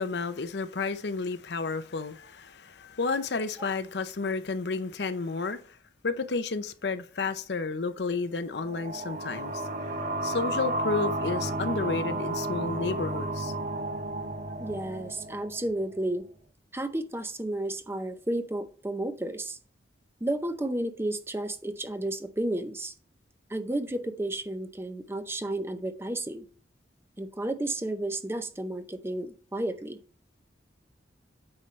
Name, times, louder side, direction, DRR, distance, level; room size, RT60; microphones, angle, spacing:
voice 1, 0.0-5.6 6.0-9.6 10.2-13.5, left 4 dB, 65° left, 0.6 m, -31 dB
sound 1, 8.5-16.0, right 1 dB, 45° right, 0.9 m, -32 dB
voice 2, 14.6-16.3 16.7-19.6 20.2-22.9 23.5-26.5 27.2-30.0, right 1 dB, 15° right, 0.6 m, -32 dB
8.8 x 5.5 x 3.2 m
head